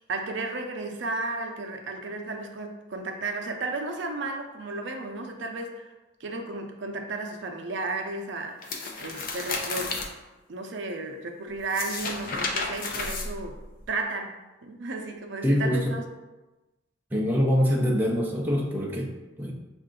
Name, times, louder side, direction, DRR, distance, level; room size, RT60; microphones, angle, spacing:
voice 1, 0.1-5.9 6.2-10.1 10.5-13.6 13.9-16.1, right 3 dB, 70° right, 4 dB, 0.5 m, -33 dB
sound 1, 8.6-10.1 11.6-13.9, left 3 dB, 45° left, 0.5 m, -32 dB
voice 2, 15.4-16.0 17.1-19.5, equal, 10° right, -2 dB, 0.5 m, -24 dB
5.4 x 2.5 x 3.7 m, 1.1 s
head